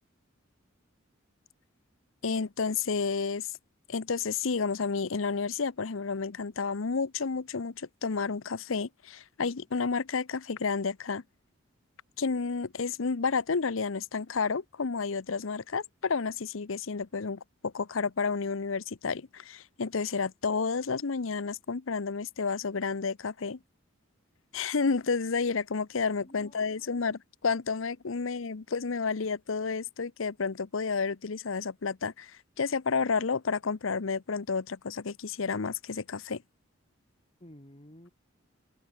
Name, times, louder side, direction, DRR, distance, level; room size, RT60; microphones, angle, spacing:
voice 1, 2.2-3.5 3.9-11.2 12.2-23.6 24.5-36.4, left 5 dB, 75° left, 0.7 m, -31 dB
voice 2, 26.2-27.1 37.4-38.1, equal, 30° left, 6.0 m, -53 dB
open air
head